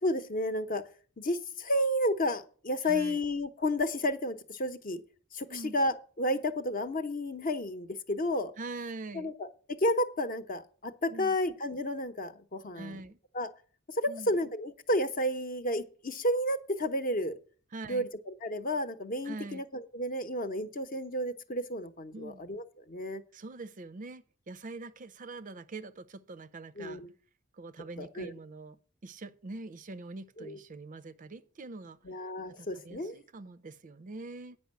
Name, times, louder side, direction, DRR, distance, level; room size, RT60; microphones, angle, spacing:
voice 1, 0.0-0.8 1.2-5.0 5.3-8.5 9.1-13.0 13.3-13.5 13.9-17.3 17.9-18.1 18.4-23.2 26.8-27.1 28.0-28.3 30.4-30.6 32.0-33.1, left 1 dB, 40° left, 0.9 m, -31 dB
voice 2, 2.8-3.2 5.5-5.8 8.6-9.3 11.1-11.4 12.7-13.2 14.1-14.3 17.7-18.1 19.2-19.6 22.1-22.4 23.3-27.0 27.5-28.8 29.0-32.0 32.6-34.6, right 3 dB, 40° right, 0.5 m, -43 dB
9.2 x 5.4 x 7.5 m
head